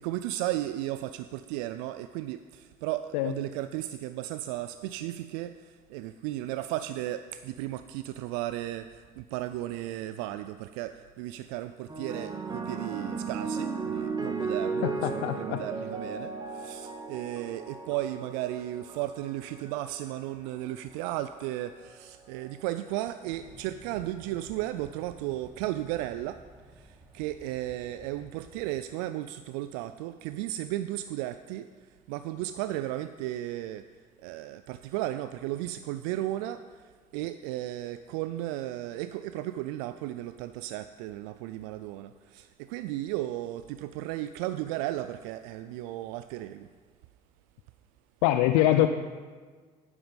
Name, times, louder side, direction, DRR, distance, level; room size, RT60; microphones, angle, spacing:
voice 1, 0.0-26.4 26.8-31.7 32.1-33.8 34.2-36.6 37.1-46.7, right 14 dB, 70° right, 11 dB, 0.4 m, -35 dB
sound 1, 11.9-20.5 21.4-21.8, right 4 dB, 20° right, 1.7 m, -35 dB
voice 2, 14.8-15.6 48.2-48.9, left 14 dB, 70° left, 9 dB, 0.5 m, -24 dB
sound 2, 23.3-28.7, right 1 dB, 5° right, 2.8 m, -53 dB
12.0 x 9.7 x 5.3 m, 1.5 s
hypercardioid pair, 60°, 20 cm